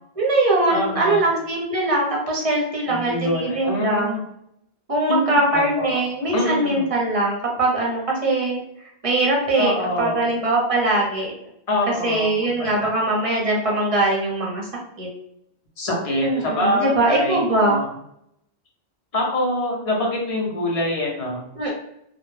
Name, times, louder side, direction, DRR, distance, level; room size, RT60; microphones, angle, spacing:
voice 1, 0.2-4.2 4.9-8.6 9.0-9.7 10.0-11.3 12.0-14.7 15.0-15.1 16.2-17.8 21.5-21.7, right 2 dB, 40° right, -3 dB, 0.7 m, -21 dB
voice 2, 0.7-1.2 2.9-4.2 5.1-6.0 6.3-6.8 9.6-10.2 11.7-12.9 15.8-17.9 19.1-21.4, left 1 dB, 40° left, -1 dB, 0.6 m, -25 dB
2.2 x 2.1 x 3.1 m, 0.75 s
omnidirectional pair, 1.1 m